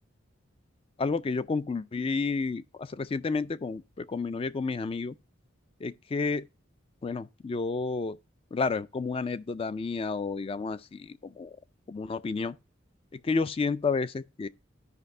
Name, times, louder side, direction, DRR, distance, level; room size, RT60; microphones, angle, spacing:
voice 1, 1.0-5.2 5.8-6.5 7.0-8.2 8.5-11.6 11.9-12.6 13.1-14.5, left 4 dB, 30° left, 0.3 m, -31 dB
13.0 x 5.3 x 2.6 m
head